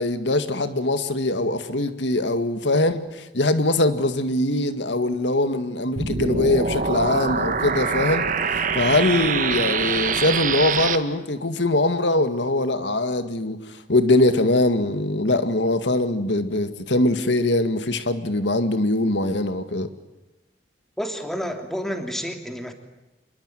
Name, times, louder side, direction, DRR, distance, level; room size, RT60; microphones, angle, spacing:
voice 1, 0.0-13.6 13.9-19.9, left 2 dB, 80° left, 2.0 m, -22 dB
sound 1, 6.0-11.0, right 5 dB, 45° right, 1.8 m, -24 dB
voice 2, 21.0-22.7, equal, ahead, 3.0 m, -30 dB
26.5 x 22.5 x 9.3 m
head